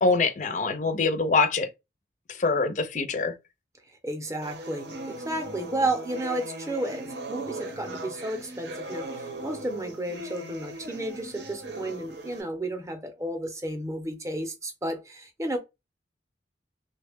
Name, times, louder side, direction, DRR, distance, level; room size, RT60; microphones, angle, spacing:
voice 1, 0.0-1.7 2.4-3.3, left 4 dB, 40° left, 0.5 m, -24 dB
voice 2, 4.0-15.6, right 1 dB, 15° right, 0.6 m, -32 dB
sound 1, 4.4-12.4, right 1 dB, 70° right, 0.7 m, -39 dB
3.2 x 2.1 x 3.4 m
head